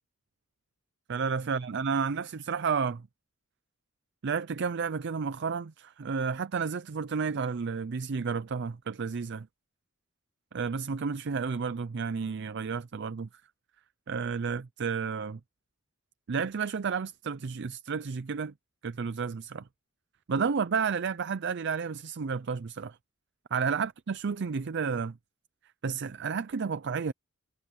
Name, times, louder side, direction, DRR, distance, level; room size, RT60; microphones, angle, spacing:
voice 1, 1.1-3.1 4.2-9.5 10.5-13.3 14.1-15.4 16.3-18.5 18.8-19.6 20.3-23.0 23.5-25.2 25.8-27.1, right 5 dB, 55° right, 0.5 m, -31 dB
head